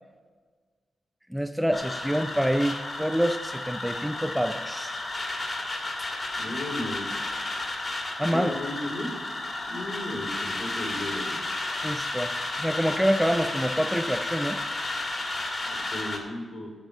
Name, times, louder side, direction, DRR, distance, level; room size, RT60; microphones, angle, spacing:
voice 1, 1.3-5.0 8.2-8.5 11.8-12.3 12.6-14.6, equal, ahead, 7 dB, 0.4 m, -26 dB
sound 1, 1.7-16.2, left 2 dB, 35° left, 2.1 m, -32 dB
voice 2, 6.4-7.2 8.3-9.3 9.7-11.4 15.7-16.7, left 1 dB, 60° left, -1 dB, 3.5 m, -35 dB
9.1 x 7.4 x 7.0 m, 1.5 s
cardioid pair, 100°, 0 cm